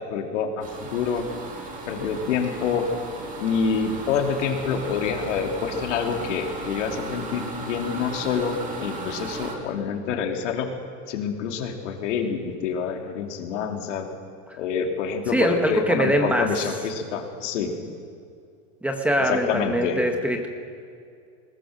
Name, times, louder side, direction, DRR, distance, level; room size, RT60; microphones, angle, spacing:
voice 1, 0.1-1.2 1.9-2.8 3.4-10.7 11.1-14.1 14.6-17.7 19.3-20.0, left 6 dB, 85° left, 3 dB, 3.0 m, -27 dB
sound 1, 0.6-9.6, right 3 dB, 20° right, 2.5 m, -36 dB
voice 2, 15.3-16.5 18.8-20.5, equal, 5° right, 4 dB, 1.0 m, -22 dB
21.5 x 20.0 x 6.5 m, 2.3 s
supercardioid pair, 170°, 35 cm